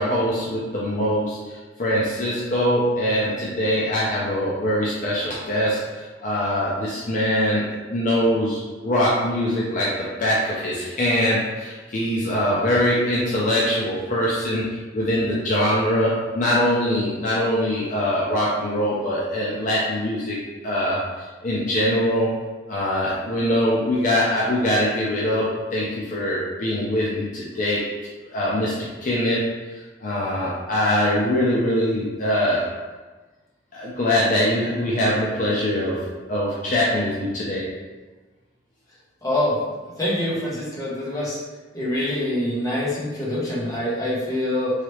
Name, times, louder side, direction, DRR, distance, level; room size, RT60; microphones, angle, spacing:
voice 1, 0.0-14.7 14.9-20.4 20.6-21.0 21.4-22.3 22.7-27.8 28.3-28.7 29.0-29.5 30.0-32.7 33.7-37.7, equal, 45° left, -6 dB, 0.5 m, -23 dB
voice 2, 39.2-39.5 40.0-41.4 41.7-44.7, left 1 dB, 20° left, -7 dB, 0.9 m, -25 dB
3.2 x 2.8 x 3.0 m, 1.3 s
head